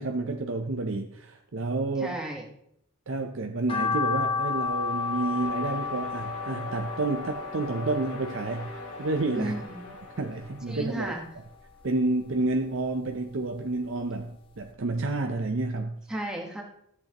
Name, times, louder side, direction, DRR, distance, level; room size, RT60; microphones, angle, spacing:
voice 1, 0.0-2.2 3.1-9.6 10.2-11.1 11.8-16.0, right 2 dB, 60° right, 5 dB, 0.6 m, -30 dB
voice 2, 2.0-2.5 9.3-9.8 10.7-11.2 16.1-16.6, right 1 dB, 5° right, -1 dB, 1.3 m, -33 dB
sound 1, 3.7-10.0 10.4-11.5 11.9-13.3 13.7-13.8 14.2-14.3 14.6-14.7, left 5 dB, 25° left, 1.1 m, -33 dB
sound 2, 4.5-11.5, left 1 dB, 85° left, 3.3 m, -42 dB
13.5 x 8.2 x 3.0 m, 0.73 s
head